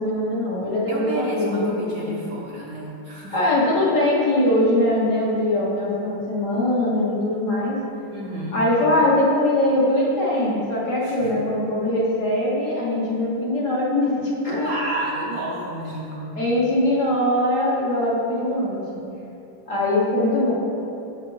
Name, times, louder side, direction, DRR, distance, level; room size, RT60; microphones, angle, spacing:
voice 1, 0.0-2.2 3.3-7.8 8.5-14.7 16.4-18.8 19.7-20.5, left 1 dB, 45° left, -5 dB, 1.3 m, -22 dB
voice 2, 0.9-3.4 8.1-8.6 11.0-11.3 14.4-16.4, right 1 dB, 65° right, -3 dB, 0.9 m, -30 dB
8.3 x 6.5 x 3.1 m, 2.9 s
omnidirectional pair, 2.3 m